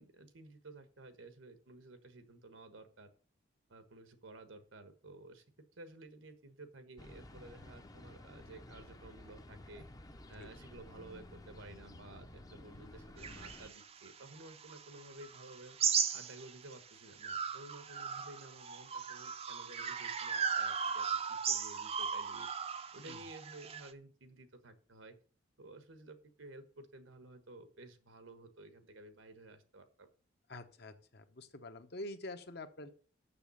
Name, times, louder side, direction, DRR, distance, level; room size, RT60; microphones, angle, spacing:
voice 1, 0.0-3.1 3.7-5.4 5.8-9.9 10.3-15.8 16.1-22.5 22.9-25.2 25.6-30.1, right 2 dB, 85° right, 9 dB, 1.3 m, -54 dB
sound 1, 7.0-13.7, left 1 dB, 20° left, 0.6 m, -53 dB
sound 2, 13.2-16.8 17.2-23.9, right 6 dB, 30° right, 0.5 m, -37 dB
voice 2, 30.5-32.9, left 1 dB, 55° left, 8 dB, 1.0 m, -47 dB
6.9 x 6.5 x 7.0 m, 0.42 s
head